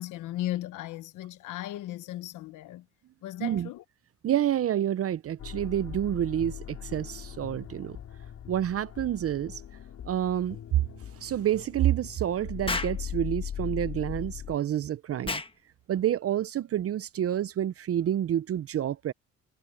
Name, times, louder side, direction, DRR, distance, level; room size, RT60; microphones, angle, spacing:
voice 1, 0.0-2.8 3.2-3.8, left 14 dB, 90° left, 1.0 m, -36 dB
voice 2, 3.4-3.7 4.2-8.0 8.5-9.6 10.1-10.6 11.2-15.4 15.9-19.1, right 11 dB, 50° right, 0.6 m, -28 dB
sound 1, 5.4-14.6, left 9 dB, 65° left, 3.4 m, -40 dB
Explosion, 12.7-13.0 15.2-15.5, left 3 dB, 15° left, 1.3 m, -31 dB
cardioid pair, 90°, 30 cm